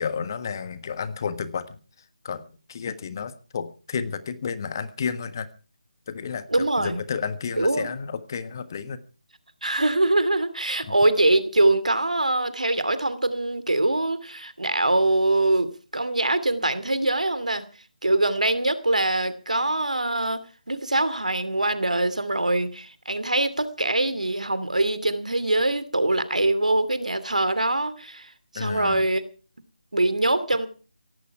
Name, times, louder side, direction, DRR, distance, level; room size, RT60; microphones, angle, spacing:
voice 1, 0.0-1.6 2.2-2.4 2.7-5.5 6.1-6.4 6.8-9.0 28.6-29.0, left 6 dB, 30° left, 13 dB, 1.4 m, -31 dB
voice 2, 6.5-7.0 7.6-8.0 9.6-17.7 18.0-29.2 29.9-30.7, right 2 dB, 70° right, 13 dB, 2.6 m, -23 dB
17.5 x 16.0 x 4.7 m, 0.38 s
figure-of-eight pair, 155°, 4 cm